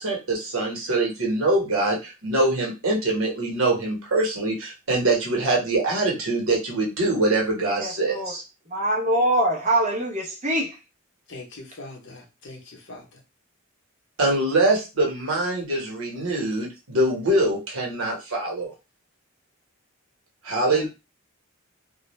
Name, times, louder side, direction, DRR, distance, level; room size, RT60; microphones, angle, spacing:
voice 1, 0.0-8.4 14.2-18.7 20.4-20.9, right 2 dB, 80° right, 1.1 m, -24 dB
voice 2, 7.8-8.3 8.7-10.8, right 1 dB, 35° right, 0.8 m, -23 dB
voice 3, 11.3-13.2 20.6-20.9, left 2 dB, 60° left, 0.8 m, -40 dB
2.4 x 2.1 x 3.0 m
head